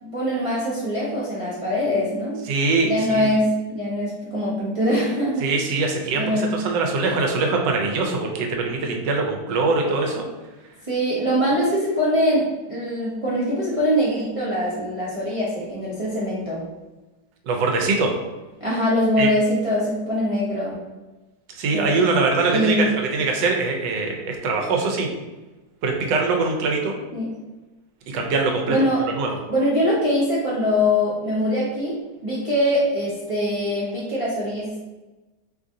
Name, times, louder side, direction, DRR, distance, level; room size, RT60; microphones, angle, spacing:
voice 1, 0.0-2.4 2.8-5.5 6.1-6.6 10.9-16.6 18.6-20.8 21.7-22.0 22.5-22.9 27.1-27.3 28.7-29.0 29.5-34.8, equal, 55° right, -8 dB, 0.3 m, -23 dB
voice 2, 2.5-3.3 5.4-10.2 17.5-18.1 19.2-19.3 21.6-25.1 25.8-26.9 28.1-28.8 29.1-29.3, right 3 dB, 85° right, 2 dB, 1.3 m, -22 dB
3.1 x 2.6 x 3.6 m, 1.1 s
omnidirectional pair, 1.9 m